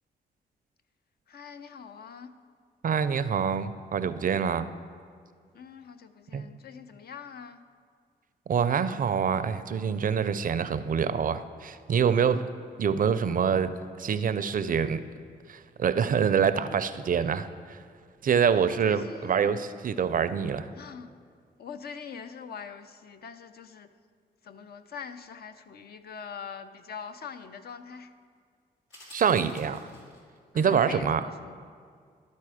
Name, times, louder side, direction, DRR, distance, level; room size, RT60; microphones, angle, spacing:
voice 1, 1.3-2.3 5.5-7.6 18.5-19.6 20.7-21.1 21.6-23.9 24.4-28.1 30.5-31.6, left 6 dB, 55° left, 10 dB, 0.5 m, -43 dB
voice 2, 2.8-4.7 6.3-6.4 8.5-12.4 12.8-13.7 14.0-15.0 15.5-17.5 18.2-20.7 29.1-29.8 30.5-31.2, right 7 dB, 45° right, 13 dB, 0.4 m, -25 dB
sound 1, 28.9-30.4, left 1 dB, 85° left, 2.1 m, -51 dB
12.5 x 4.2 x 4.9 m, 2.1 s
supercardioid pair, 55°, 19 cm